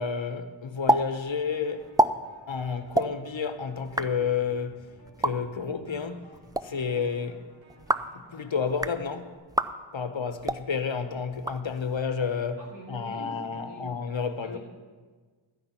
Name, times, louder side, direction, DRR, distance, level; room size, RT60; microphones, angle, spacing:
voice 1, 0.0-2.0 2.5-4.9 5.2-6.3 6.6-7.5 8.3-9.4 9.9-12.6 12.9-14.6, left 6 dB, 70° left, 1.0 m, -30 dB
sound 1, 0.9-1.0 1.3-1.4 1.8-2.1 2.9-3.1 3.8-4.1 5.1-5.3 6.3-6.6 7.7-8.1 8.7-9.0 9.5-9.7 10.4-10.6 11.3-12.0, right 1 dB, 10° right, 0.4 m, -26 dB
sound 2, 1.4-9.4, right 1 dB, 70° right, 3.7 m, -56 dB
voice 2, 12.6-13.9 14.3-14.6, equal, 90° right, 4.2 m, -44 dB
13.0 x 5.9 x 9.4 m
wide cardioid pair, 40°, 48 cm